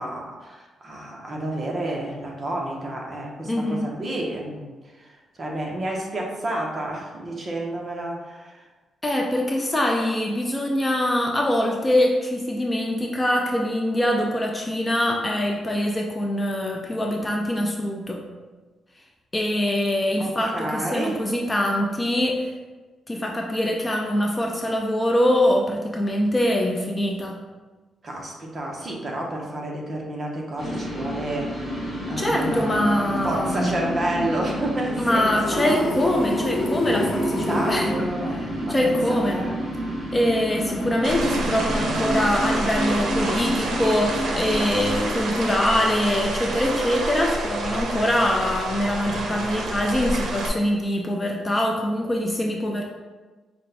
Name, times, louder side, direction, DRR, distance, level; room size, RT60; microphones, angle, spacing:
voice 1, 0.0-4.7 5.0-5.1 5.4-8.6 20.2-21.2 28.0-31.8 32.1-35.8 37.5-39.0 39.3-39.6 40.6-40.9, right 1 dB, 30° right, -1 dB, 0.8 m, -30 dB
voice 2, 3.4-3.9 9.0-18.3 19.3-22.5 23.1-27.4 32.2-33.8 35.0-38.1 38.3-38.4 38.7-39.4 40.1-52.8, left 1 dB, 15° left, 0 dB, 0.4 m, -23 dB
sound 1, 30.6-45.2, equal, 15° right, 1.4 m, -30 dB
sound 2, 35.4-37.8, left 1 dB, 70° left, 1.3 m, -27 dB
sound 3, 41.0-50.5, right 2 dB, 75° right, 0.7 m, -28 dB
5.2 x 2.2 x 4.0 m, 1.3 s
cardioid pair, 135°, 0 cm